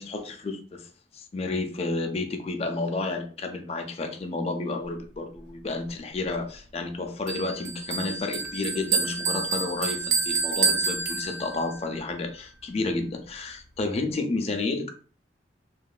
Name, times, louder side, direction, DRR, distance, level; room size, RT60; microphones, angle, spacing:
voice 1, 0.0-14.9, left 3 dB, 35° left, 5 dB, 0.4 m, -31 dB
Bell, 7.3-11.8, right 5 dB, 85° right, 0.6 m, -28 dB
2.9 x 2.2 x 2.3 m, 0.41 s
head